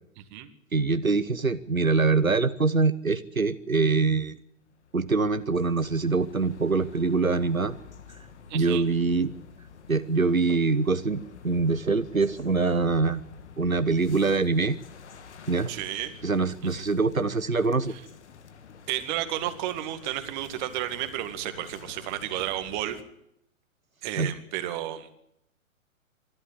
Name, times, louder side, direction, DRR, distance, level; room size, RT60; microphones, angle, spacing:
voice 1, 0.2-0.5 3.8-3.9 8.5-8.9 15.7-16.1 18.9-23.0 24.0-25.1, right 13 dB, 35° right, 9 dB, 2.1 m, -32 dB
voice 2, 0.7-4.3 4.9-7.8 8.5-9.3 9.9-13.2 13.6-14.8 15.5-15.7 16.2-17.9 24.2-24.3, right 4 dB, 90° right, 12 dB, 1.0 m, -24 dB
sound 1, 4.5-23.0, left 6 dB, 55° left, 2.2 m, -49 dB
25.0 x 12.0 x 9.4 m, 0.77 s
figure-of-eight pair, 110°, 40 cm